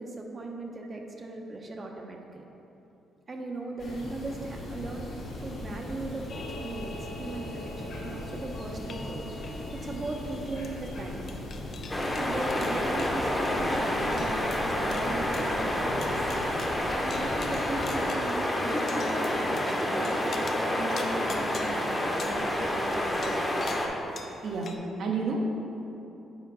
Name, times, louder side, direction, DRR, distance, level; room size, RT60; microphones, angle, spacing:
voice 1, 0.0-2.4 3.3-5.1 5.4-9.3 9.5-11.2 12.1-16.2 16.9-23.4, right 2 dB, 35° right, 2 dB, 0.7 m, -38 dB
sound 1, 3.8-18.0, left 1 dB, 70° left, 1.5 m, -39 dB
sound 2, 6.3-24.8, left 3 dB, 55° left, 0.5 m, -46 dB
sound 3, 11.9-23.9, left 1 dB, 15° left, 0.9 m, -29 dB
voice 2, 24.4-25.4, right 4 dB, 65° right, 1 dB, 0.8 m, -30 dB
7.0 x 4.5 x 3.9 m, 3.0 s
cardioid pair, 90°, 0 cm